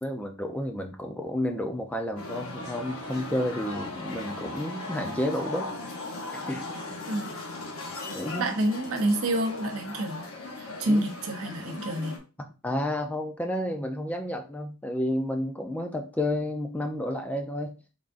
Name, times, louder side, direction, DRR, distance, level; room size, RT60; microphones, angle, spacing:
voice 1, 0.0-5.7 6.3-6.7 8.1-8.5 10.8-11.0 12.6-17.8, left 1 dB, 5° left, 4 dB, 0.4 m, -31 dB
sound 1, 2.2-12.2, left 2 dB, 70° left, 0.9 m, -38 dB
voice 2, 8.4-10.3 10.6-12.2, right 1 dB, 70° right, 4 dB, 0.7 m, -28 dB
3.8 x 3.5 x 2.5 m, 0.32 s
head